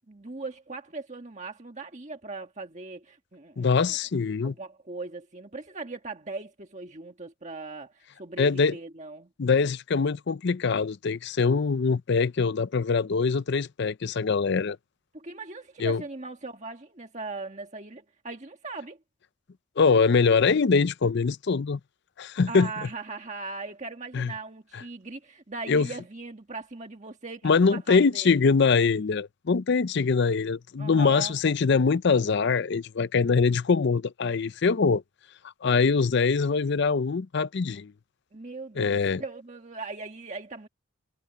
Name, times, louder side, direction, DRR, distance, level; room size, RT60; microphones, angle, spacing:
voice 1, 0.1-4.0 4.4-9.3 15.1-19.0 22.5-28.4 30.8-31.3 38.3-40.7, right 3 dB, 35° right, 1.6 m, -39 dB
voice 2, 3.6-4.5 8.4-8.8 9.4-14.8 15.8-16.0 19.8-21.8 22.2-22.7 24.1-24.3 25.7-25.9 27.4-35.0 35.6-37.9 38.8-39.2, left 5 dB, 55° left, 0.5 m, -23 dB
head